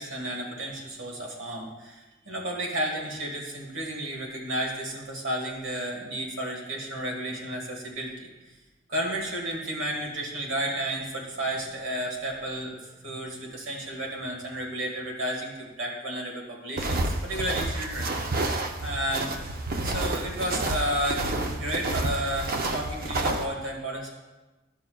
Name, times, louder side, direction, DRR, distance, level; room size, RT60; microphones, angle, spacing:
voice 1, 0.0-8.3 8.9-18.1 18.8-19.4 19.8-24.1, right 1 dB, 75° right, 0 dB, 1.6 m, -32 dB
sound 1, 16.8-23.5, right 2 dB, 50° right, 0.6 m, -29 dB
12.5 x 5.5 x 2.3 m, 1.2 s
head